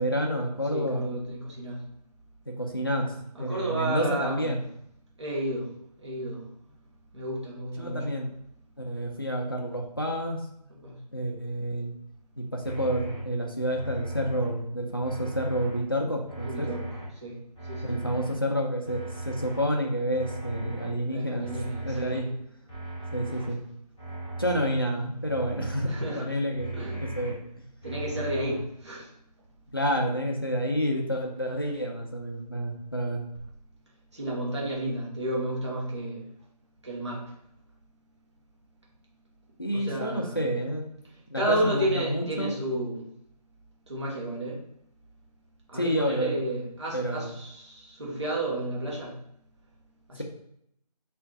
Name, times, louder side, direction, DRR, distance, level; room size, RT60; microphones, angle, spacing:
voice 1, 0.0-1.1 2.5-3.1 3.4-4.6 7.8-8.3 8.8-10.4 11.1-11.9 12.4-16.7 17.8-21.5 21.8-22.3 23.1-23.6 24.4-27.6 29.7-33.3 39.6-40.8 41.3-42.5 45.7-46.4 46.9-47.3, equal, 35° left, 1 dB, 0.5 m, -29 dB
voice 2, 0.7-1.8 3.3-4.6 5.2-5.7 6.0-6.4 7.1-8.2 10.7-11.0 16.4-16.9 17.2-17.4 17.7-18.0 21.1-22.3 25.9-26.4 26.7-27.0 27.8-29.1 34.1-36.3 36.8-37.2 39.7-40.4 41.3-43.0 43.9-44.6 45.7-49.1 50.1-50.2, right 1 dB, 45° right, -4 dB, 1.0 m, -32 dB
sound 1, 12.6-13.2 13.7-14.5 15.0-15.8 16.3-17.0 17.5-18.3 18.8-19.6 20.1-20.9 21.4-22.2 22.7-23.5 24.0-24.7 25.2-26.0 26.5-27.3 27.8-28.6, right 1 dB, 5° right, 0.8 m, -37 dB
6.1 x 2.5 x 2.3 m, 0.74 s
figure-of-eight pair, 165°, 21 cm